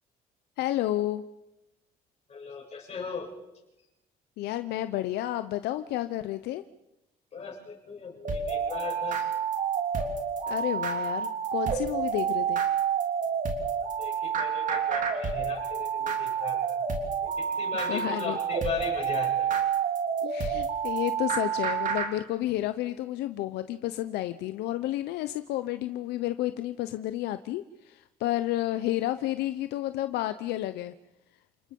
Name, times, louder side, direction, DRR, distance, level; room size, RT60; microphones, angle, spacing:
voice 1, 0.6-1.2 4.4-6.6 10.5-12.6 17.9-18.4 20.2-30.9, left 14 dB, 85° left, 11 dB, 0.8 m, -31 dB
voice 2, 2.3-3.3 7.3-9.3 14.0-16.8 17.2-19.6, left 5 dB, 40° left, -1 dB, 7.6 m, -38 dB
sound 1, 8.2-22.1, right 7 dB, 50° right, 3.4 m, -29 dB
29.0 x 19.5 x 5.4 m, 0.94 s
cardioid pair, 110°, 17 cm